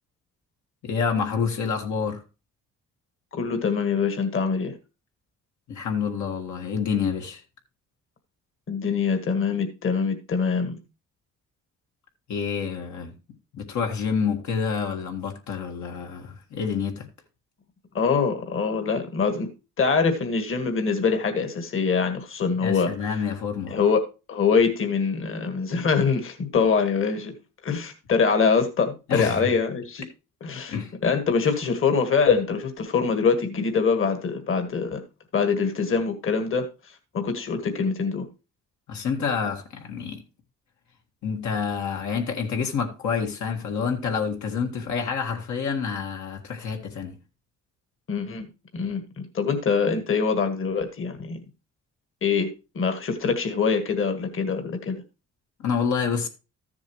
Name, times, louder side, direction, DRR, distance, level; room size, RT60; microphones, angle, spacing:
voice 1, 0.8-2.2 5.7-7.4 12.3-13.1 13.6-17.1 22.6-23.8 29.1-29.5 30.7-30.9 38.9-40.2 41.2-47.2 55.6-56.3, left 6 dB, 70° left, 1.7 m, -28 dB
voice 2, 3.3-4.8 8.7-10.8 17.9-19.5 19.8-22.9 23.7-24.0 24.3-27.3 27.6-30.0 30.4-30.7 31.0-35.0 35.3-36.7 37.1-38.3 48.1-48.5 48.7-51.4 52.2-52.5 52.7-55.0, left 5 dB, 45° left, 1.6 m, -24 dB
13.5 x 7.2 x 3.0 m
cardioid pair, 90°, 30 cm